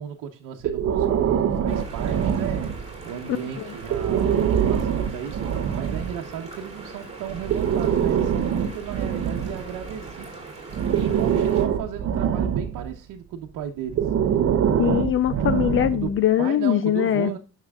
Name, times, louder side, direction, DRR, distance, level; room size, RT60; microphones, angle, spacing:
voice 1, 0.0-14.1 15.9-16.1 16.4-17.4, right 9 dB, 85° right, 1.0 m, -35 dB
Breathing, 0.6-3.1 3.8-6.2 7.3-10.1 10.7-12.9 13.9-16.2, right 8 dB, 45° right, 0.7 m, -24 dB
sound 1, 1.7-11.6, right 3 dB, 20° right, 2.8 m, -41 dB
voice 2, 14.8-17.4, left 11 dB, 45° left, 0.5 m, -22 dB
9.7 x 6.5 x 2.3 m
cardioid pair, 160°, 31 cm